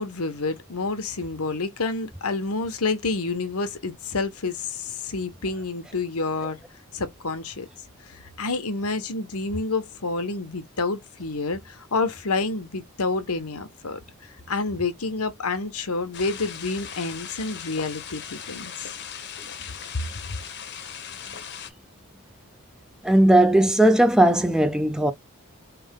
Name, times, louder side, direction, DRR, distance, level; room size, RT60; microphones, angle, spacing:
voice 1, 0.0-6.6 6.9-7.7 8.0-18.9 19.9-20.0, left 3 dB, 80° left, 1.2 m, -29 dB
sound 1, 16.1-21.7, left 8 dB, 50° left, 1.0 m, -38 dB
voice 2, 23.0-25.1, right 1 dB, 5° right, 0.5 m, -17 dB
4.1 x 3.5 x 3.5 m
head